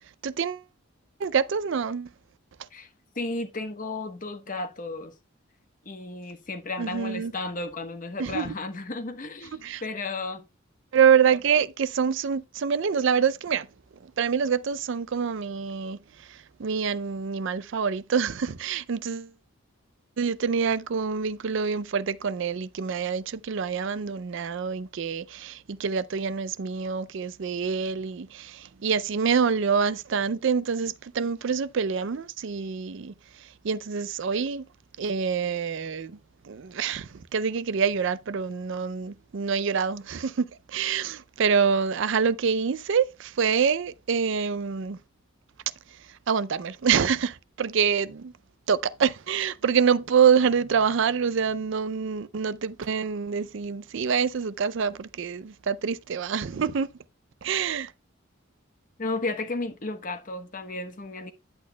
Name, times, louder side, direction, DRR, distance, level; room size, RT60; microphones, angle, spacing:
voice 1, 0.2-0.6 1.2-2.1 6.8-7.3 8.2-8.5 9.6-9.8 10.9-13.7 14.0-19.3 20.2-34.7 35.0-36.2 36.4-45.0 46.1-48.3 48.7-56.9 57.4-57.9, right 6 dB, 60° right, 0.4 m, -26 dB
voice 2, 3.2-5.1 5.9-10.5 59.0-61.3, left 3 dB, 40° left, 1.0 m, -33 dB
10.5 x 8.5 x 2.2 m
head